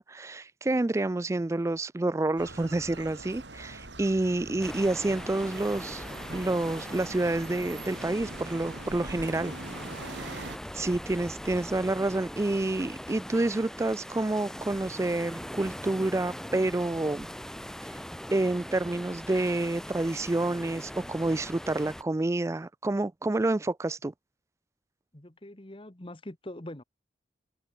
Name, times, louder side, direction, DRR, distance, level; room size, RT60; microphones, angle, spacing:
voice 1, 0.0-6.0 6.3-9.5 10.0-10.4 10.7-17.3 18.3-24.1, right 2 dB, 15° right, 0.3 m, -28 dB
sound 1, 2.4-10.6, right 2 dB, 75° right, 4.6 m, -43 dB
sound 2, 4.6-22.0, equal, 5° left, 1.3 m, -41 dB
voice 2, 25.1-26.8, left 1 dB, 30° left, 1.4 m, -44 dB
head